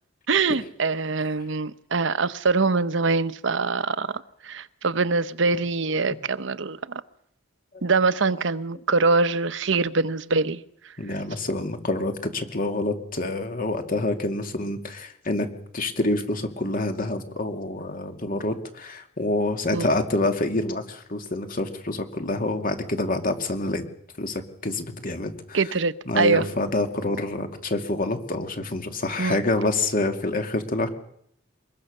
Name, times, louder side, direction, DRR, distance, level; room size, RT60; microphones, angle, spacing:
voice 1, 0.3-7.0 7.8-10.6 19.7-19.9 25.5-26.5 29.2-29.4, right 3 dB, 70° right, 0.9 m, -24 dB
voice 2, 11.0-15.5 15.7-23.8 24.2-25.6 26.1-30.9, left 2 dB, 45° left, 2.5 m, -27 dB
24.5 x 21.5 x 6.6 m
head